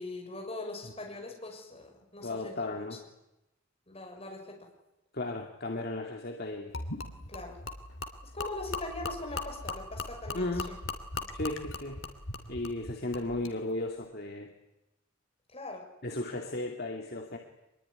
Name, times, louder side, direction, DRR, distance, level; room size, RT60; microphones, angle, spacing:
voice 1, 0.0-2.8 3.9-4.5 7.3-7.6 8.3-10.8 11.2-11.3 15.5-15.9, left 2 dB, 30° left, 1 dB, 6.9 m, -41 dB
voice 2, 2.2-3.0 5.1-6.7 10.3-10.7 11.3-12.0 12.5-14.5 16.0-17.4, left 2 dB, 50° left, 2 dB, 2.3 m, -35 dB
Gurgling / Liquid, 6.7-13.6, left 2 dB, 75° left, 2.9 m, -39 dB
25.0 x 22.0 x 10.0 m, 0.92 s
head